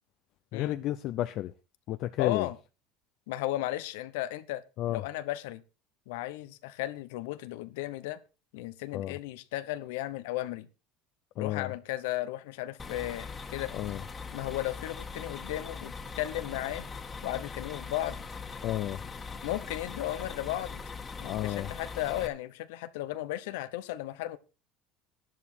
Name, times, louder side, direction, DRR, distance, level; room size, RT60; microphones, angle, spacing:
voice 1, 0.5-1.5 1.9-2.5 4.8-5.0 8.9-9.2 11.4-11.7 13.7-14.0 18.6-19.0 21.2-21.7, left 14 dB, 60° left, 0.6 m, -32 dB
voice 2, 2.2-2.6 3.3-4.6 4.9-5.6 6.1-8.2 8.5-10.7 11.4-13.7 14.3-16.9 17.2-18.2 19.4-20.8 21.2-24.4, left 15 dB, 85° left, 1.0 m, -35 dB
sound 1, 12.8-22.3, left 4 dB, 25° left, 1.7 m, -41 dB
11.0 x 11.0 x 4.5 m
supercardioid pair, 105°, 0 cm